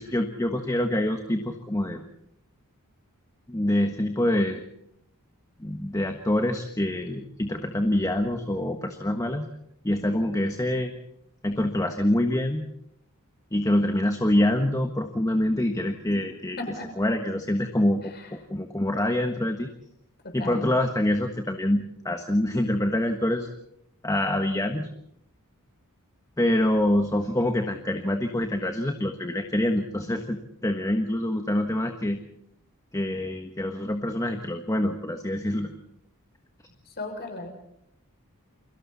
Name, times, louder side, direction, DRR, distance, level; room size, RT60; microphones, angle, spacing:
voice 1, 0.0-2.0 3.5-4.6 5.6-9.5 9.8-10.9 11.4-12.7 13.5-16.6 17.0-19.7 20.3-23.5 24.0-24.9 26.4-32.2 32.9-35.7, left 1 dB, 15° left, 5 dB, 1.4 m, -25 dB
voice 2, 16.6-16.9 18.0-18.3 20.2-20.7 36.8-37.5, left 2 dB, 45° left, 4 dB, 6.6 m, -36 dB
29.5 x 23.5 x 4.2 m, 0.75 s
head